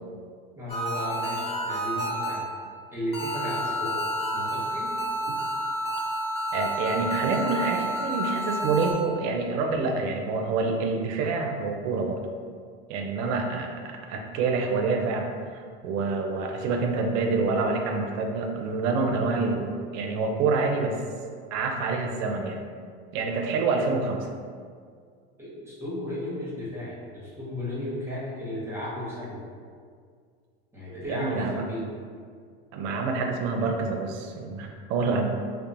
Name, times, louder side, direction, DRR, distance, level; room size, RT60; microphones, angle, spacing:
voice 1, 0.6-2.4 2.9-4.0 4.3-5.0 25.4-29.4 30.7-31.9, left 1 dB, 10° right, -7 dB, 0.9 m, -34 dB
sound 1, 0.7-2.7 3.1-8.9, right 1 dB, 20° left, 0.6 m, -30 dB
voice 2, 6.5-12.2 12.9-13.8 14.1-21.0 21.5-22.6 23.1-24.3 31.1-31.6 32.7-35.3, right 4 dB, 60° right, 3 dB, 0.5 m, -27 dB
2.9 x 2.0 x 2.5 m, 2.1 s
supercardioid pair, 95°, 31 cm